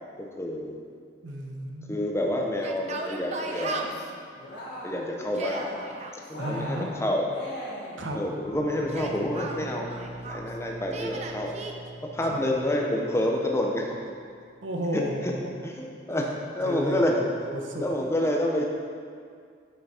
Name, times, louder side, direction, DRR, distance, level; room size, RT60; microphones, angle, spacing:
voice 1, 0.2-0.8 1.9-3.9 4.8-5.7 6.3-7.3 8.1-9.9 10.2-11.6 12.1-13.9 14.9-15.3 15.6-17.1 17.7-18.7, left 1 dB, 15° left, 0 dB, 0.6 m, -28 dB
voice 2, 1.2-2.0 6.4-6.9 8.0-8.2 12.3-12.4 14.6-15.6 16.6-17.0 17.4-17.8, equal, 80° right, 1 dB, 0.8 m, -32 dB
Yell, 2.5-4.1 5.2-6.2 8.7-10.5 10.9-11.7, right 3 dB, 35° right, 0.5 m, -36 dB
Cheering, 3.3-4.0 4.3-5.0 5.3-6.0 6.3-8.1, equal, 65° left, 1.6 m, -39 dB
sound 1, 8.4-14.8, equal, 55° right, 1.9 m, -44 dB
6.9 x 5.8 x 4.2 m, 2.2 s
head